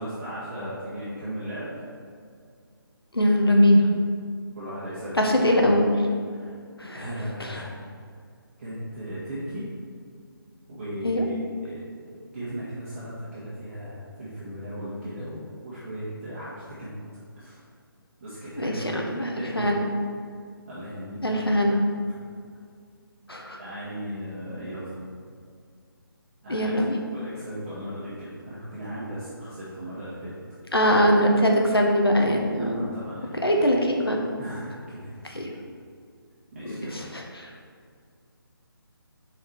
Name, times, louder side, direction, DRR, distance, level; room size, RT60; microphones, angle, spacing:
voice 1, 0.0-1.8 4.5-5.6 6.3-6.5 6.9-7.7 8.6-9.7 10.7-11.4 11.6-11.8 12.0-17.0 17.4-17.6 18.2-19.7 20.7-21.5 23.6-25.1 26.4-26.7 27.1-30.3 32.6-33.7 34.4-35.1 36.5-37.0, equal, 30° right, -11 dB, 1.9 m, -36 dB
voice 2, 3.1-3.9 5.1-5.9 6.8-7.1 7.4-7.6 11.0-11.3 18.6-19.8 21.2-21.8 23.3-23.6 26.5-27.0 30.7-32.8 33.4-34.2 35.2-35.5 36.6-37.5, equal, 80° left, 1 dB, 1.3 m, -22 dB
7.5 x 4.9 x 4.6 m, 2.2 s
figure-of-eight pair, 150°, 13 cm